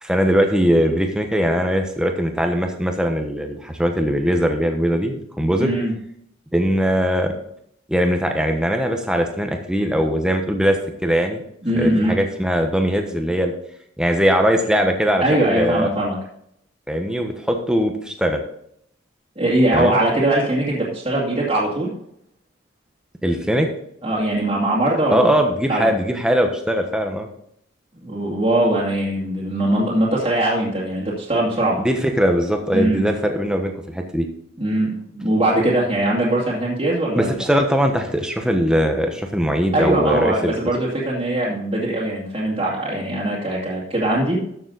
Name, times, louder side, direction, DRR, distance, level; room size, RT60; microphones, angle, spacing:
voice 1, 0.0-5.7 6.5-7.3 7.9-11.4 11.7-13.5 14.0-15.9 16.9-18.4 19.7-20.0 23.2-23.7 25.1-27.3 31.8-34.3 37.1-40.5, equal, 5° right, 4 dB, 1.1 m, -20 dB
voice 2, 5.6-5.9 11.6-12.2 15.2-16.2 19.4-21.9 24.0-25.3 25.7-25.9 28.0-31.8 32.7-33.1 34.6-37.5 39.7-44.4, right 1 dB, 30° right, -6 dB, 2.4 m, -21 dB
13.0 x 7.0 x 4.0 m, 0.72 s
head